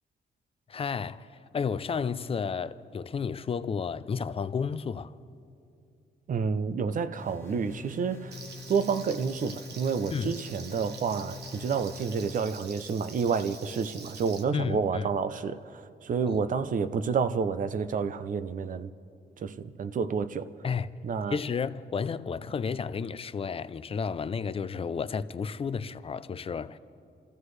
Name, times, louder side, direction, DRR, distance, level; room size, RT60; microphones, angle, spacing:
voice 1, 0.7-5.2 10.1-10.4 14.5-15.1 16.3-16.4 20.6-20.9 21.3-26.8, left 6 dB, 35° left, 0.4 m, -32 dB
voice 2, 6.3-8.4 8.7-18.9 19.4-20.5 21.0-21.4, right 5 dB, 50° right, 0.5 m, -29 dB
sound 1, 7.2-12.3, left 4 dB, 15° left, 1.4 m, -44 dB
Frying (food), 8.3-14.4, right 4 dB, 75° right, 1.2 m, -46 dB
28.0 x 15.0 x 3.2 m
wide cardioid pair, 150°, 18 cm